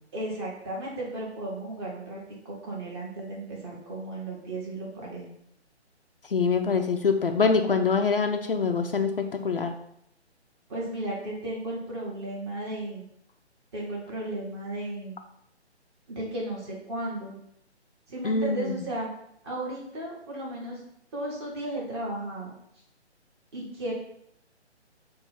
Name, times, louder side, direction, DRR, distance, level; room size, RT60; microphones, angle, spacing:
voice 1, 0.1-5.3 10.7-13.1 13.7-15.1 16.1-17.4 18.1-19.1 19.4-20.8 21.1-22.5 23.5-23.9, right 1 dB, 25° right, -4 dB, 1.7 m, -34 dB
voice 2, 6.3-9.7 18.2-18.8, left 5 dB, 50° left, 5 dB, 0.6 m, -24 dB
7.3 x 2.6 x 5.8 m, 0.74 s
figure-of-eight pair, 140°, 35 cm